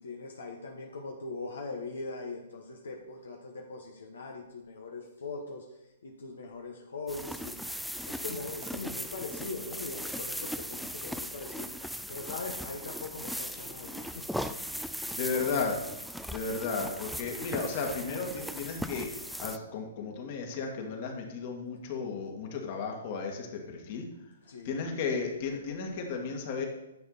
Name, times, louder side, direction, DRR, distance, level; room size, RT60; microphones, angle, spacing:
voice 1, 0.0-7.6 8.0-11.7 12.1-14.4 15.0-15.1 24.4-24.7, left 3 dB, 80° left, 1 dB, 1.3 m, -41 dB
sound 1, 7.1-19.6, equal, ahead, 0.4 m, -38 dB
voice 2, 14.8-15.8 16.3-24.0 24.6-26.7, left 4 dB, 50° left, 2 dB, 2.2 m, -34 dB
10.5 x 7.4 x 4.2 m, 0.94 s
hypercardioid pair, 135°, 0 cm